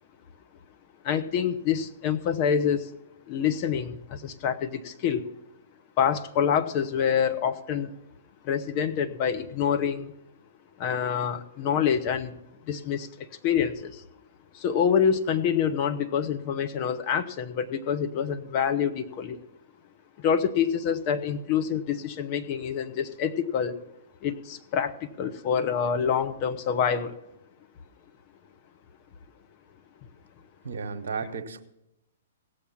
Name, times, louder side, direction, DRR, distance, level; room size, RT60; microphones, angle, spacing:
voice 1, 1.0-2.9 3.3-5.3 6.0-7.9 8.4-10.1 10.8-12.4 12.7-14.0 14.5-19.4 20.2-23.8 24.2-27.1, left 7 dB, 40° left, 8 dB, 0.9 m, -26 dB
voice 2, 30.6-31.6, right 5 dB, 65° right, 8 dB, 1.1 m, -33 dB
17.0 x 7.1 x 5.7 m, 0.86 s
figure-of-eight pair, 115°, 0 cm